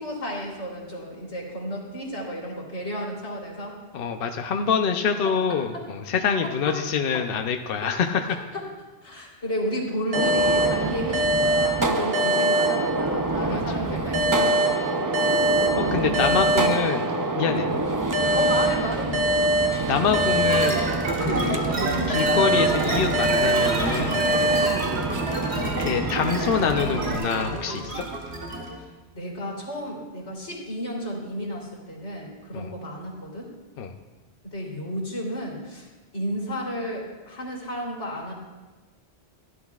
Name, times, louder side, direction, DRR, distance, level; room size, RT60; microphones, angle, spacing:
voice 1, 0.0-3.8 5.2-5.9 6.4-6.8 7.1-7.2 7.8-7.9 8.3-8.7 9.0-15.1 15.6-17.0 17.5-17.7 18.3-19.6 24.5-24.8 28.8-33.5 34.4-38.3, equal, 90° left, -2 dB, 3.4 m, -33 dB
voice 2, 3.9-8.4 13.5-13.6 15.9-17.8 19.9-20.8 21.2-21.6 22.1-24.2 25.8-28.0 32.5-32.7 33.8-33.9, left 6 dB, 60° left, 5 dB, 0.8 m, -25 dB
Gunshot gunfire, 10.1-27.2, right 3 dB, 30° right, 0.4 m, -28 dB
sound 1, 10.1-13.5 14.1-17.4 18.1-21.5 22.1-25.4, right 1 dB, 60° right, 1.7 m, -24 dB
sound 2, 20.5-28.8, right 2 dB, 75° right, 1.6 m, -29 dB
15.5 x 11.0 x 2.4 m, 1.2 s
omnidirectional pair, 1.1 m